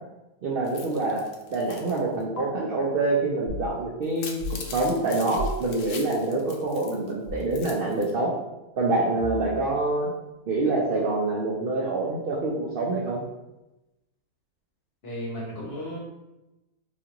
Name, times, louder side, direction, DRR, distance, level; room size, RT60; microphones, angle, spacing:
voice 1, 0.4-1.2 1.5-8.3 8.8-10.1 10.5-13.2, right 2 dB, 80° right, -3 dB, 0.5 m, -26 dB
sound 1, 0.6-2.0 2.4-2.5 4.0-7.1 7.4-8.1, left 5 dB, 70° left, 0.9 m, -42 dB
sound 2, 3.5-3.7 4.4-4.7 5.4-5.6 7.3-7.6 9.2-9.7, left 1 dB, 60° right, 1.0 m, -34 dB
voice 2, 15.0-16.0, equal, 45° left, -4 dB, 1.0 m, -34 dB
4.2 x 2.4 x 2.9 m, 0.99 s
omnidirectional pair, 1.6 m